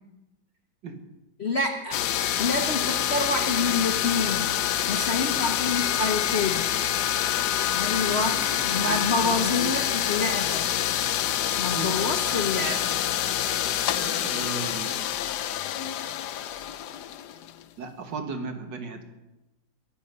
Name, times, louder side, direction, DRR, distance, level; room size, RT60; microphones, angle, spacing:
voice 1, 1.4-2.0 2.4-4.6 4.9-6.7 7.7-10.6 11.6-13.0, left 3 dB, 40° left, 2 dB, 1.1 m, -27 dB
sound 1, 1.9-17.6, left 11 dB, 70° left, 1.1 m, -27 dB
voice 2, 8.0-9.7 11.4-12.7 14.0-15.0 17.8-19.0, right 3 dB, 70° right, 5 dB, 2.2 m, -37 dB
23.0 x 8.5 x 5.3 m, 0.98 s
omnidirectional pair, 2.1 m